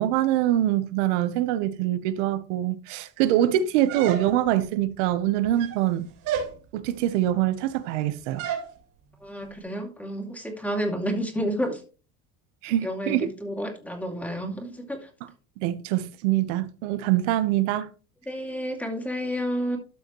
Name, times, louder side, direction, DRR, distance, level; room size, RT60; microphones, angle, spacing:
voice 1, 0.0-6.1 6.7-8.5 12.6-13.3 15.6-17.9, right 12 dB, 80° right, 1.1 m, -24 dB
sound 1, 3.9-4.6 5.4-5.9 6.2-6.6 8.4-8.7, right 8 dB, 65° right, 3.5 m, -31 dB
voice 2, 9.2-11.8 12.8-15.1 18.3-19.8, equal, 5° left, 2.4 m, -30 dB
13.0 x 5.6 x 3.1 m
supercardioid pair, 135°, 35 cm